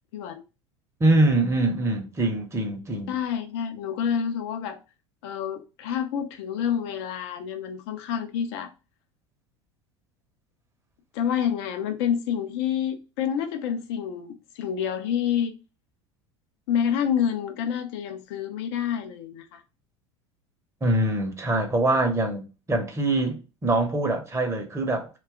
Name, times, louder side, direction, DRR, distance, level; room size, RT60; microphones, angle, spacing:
voice 1, 1.0-3.1 20.8-25.1, right 2 dB, 20° right, 0.8 m, -24 dB
voice 2, 3.1-4.8 5.2-8.7 11.1-15.5 16.7-19.6, left 8 dB, 60° left, 0.5 m, -28 dB
2.7 x 2.3 x 3.5 m
figure-of-eight pair, 75°, 15 cm